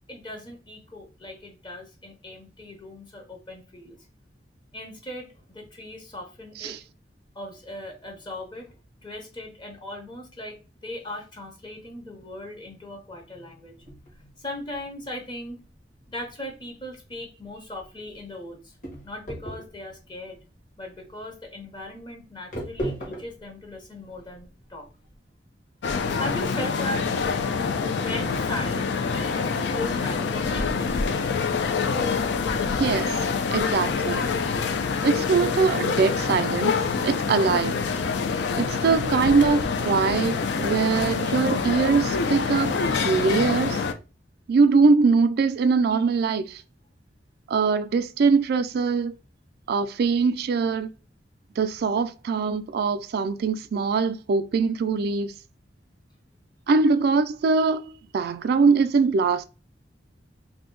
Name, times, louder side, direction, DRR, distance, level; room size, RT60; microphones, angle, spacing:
voice 1, 0.1-4.0 4.7-6.8 7.3-8.8 9.0-13.9 14.4-15.6 16.1-18.7 19.0-20.4 20.8-24.9 26.2-27.0 28.0-31.0, left 1 dB, 25° left, 0.7 m, -38 dB
sound 1, 13.8-25.2, right 1 dB, 45° left, 1.2 m, -39 dB
sound 2, 25.8-43.9, left 5 dB, 70° left, 0.4 m, -26 dB
voice 2, 32.8-33.2 33.5-34.3 35.0-36.8 37.0-37.8 38.6-43.8 44.5-46.6 47.5-49.1 49.7-50.9 51.6-55.3 56.7-57.8 58.1-59.4, right 4 dB, 60° right, 0.3 m, -22 dB
2.7 x 2.1 x 3.7 m
head